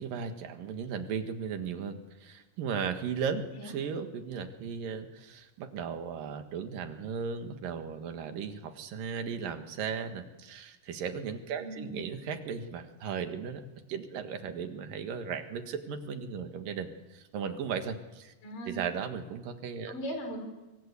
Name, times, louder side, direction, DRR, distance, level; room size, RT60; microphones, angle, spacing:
voice 1, 0.0-13.6 13.9-18.3 18.7-19.9, right 6 dB, 85° right, 7 dB, 3.4 m, -36 dB
voice 2, 11.6-12.1 18.4-18.7 19.9-20.5, equal, 80° left, 5 dB, 6.4 m, -39 dB
25.5 x 23.5 x 8.3 m, 1.1 s
omnidirectional pair, 3.8 m